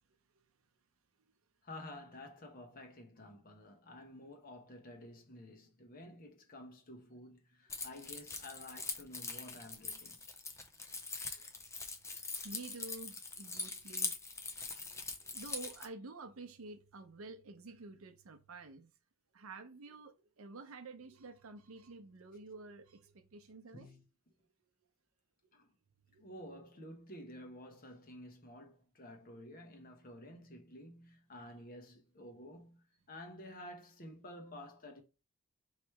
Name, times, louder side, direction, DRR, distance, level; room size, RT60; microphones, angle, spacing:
voice 1, 1.6-10.2 23.7-24.0 25.5-25.7 26.2-35.0, left 1 dB, 40° left, 1.0 m, -51 dB
Keys jangling, 7.7-15.9, left 4 dB, 15° left, 0.5 m, -42 dB
voice 2, 12.4-14.2 14.5-18.9 19.3-23.9 26.1-26.2, right 3 dB, 75° right, 0.7 m, -50 dB
3.2 x 2.9 x 4.5 m
head